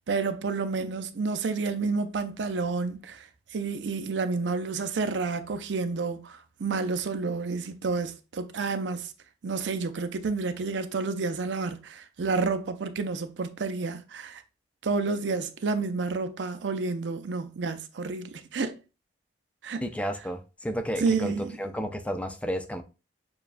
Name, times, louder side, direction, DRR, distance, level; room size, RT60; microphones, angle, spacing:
voice 1, 0.1-9.1 9.4-14.4 14.8-18.8 19.6-19.8 21.0-21.6, right 4 dB, 90° right, 0.5 m, -30 dB
voice 2, 19.8-22.8, equal, 10° left, 0.3 m, -32 dB
6.8 x 2.3 x 2.4 m
head